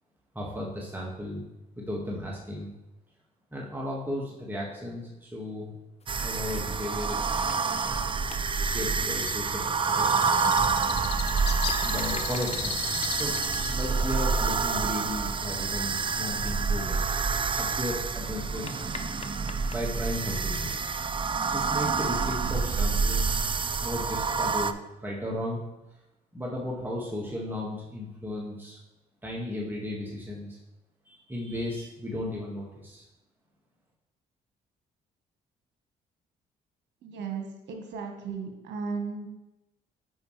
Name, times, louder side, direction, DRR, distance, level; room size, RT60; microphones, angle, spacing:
voice 1, 0.3-1.5 1.8-2.7 3.5-5.7 6.2-7.4 8.6-10.4 11.8-12.8 13.1-13.4 13.6-17.0 17.5-18.8 19.7-20.8 21.5-23.4 23.8-25.6 26.3-28.8 29.2-30.6 31.1-33.0, left 1 dB, 10° right, -4 dB, 1.8 m, -35 dB
sound 1, 6.0-22.3, left 4 dB, 35° left, 0.8 m, -50 dB
sound 2, 6.1-24.7, right 5 dB, 25° right, 0.4 m, -28 dB
Bird, 9.2-16.5, left 10 dB, 60° left, 0.5 m, -38 dB
voice 2, 37.0-39.3, right 5 dB, 70° right, 4 dB, 1.4 m, -35 dB
8.8 x 5.2 x 3.3 m, 0.97 s
supercardioid pair, 60°, 19 cm